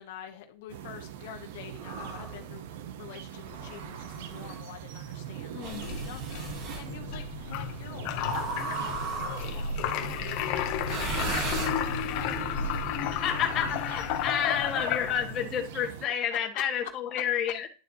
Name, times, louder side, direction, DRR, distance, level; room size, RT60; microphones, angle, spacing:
voice 1, 0.0-2.7 3.0-9.0 9.2-12.3 16.5-16.6 17.1-17.2, left 9 dB, 70° left, 4 dB, 1.1 m, -46 dB
sound 1, 0.7-16.1, right 10 dB, 75° right, 0.8 m, -42 dB
sound 2, 1.8-2.4 3.4-4.6 5.6-6.9 8.2-9.7 10.8-12.2, right 2 dB, 45° right, 1.9 m, -36 dB
voice 2, 5.5-6.2 13.1-17.7, left 8 dB, 30° left, 2 dB, 1.5 m, -30 dB
sound 3, 5.7-15.5, left 8 dB, 50° left, 0.9 m, -33 dB
11.0 x 4.3 x 2.8 m, 0.35 s
supercardioid pair, 155°, 0 cm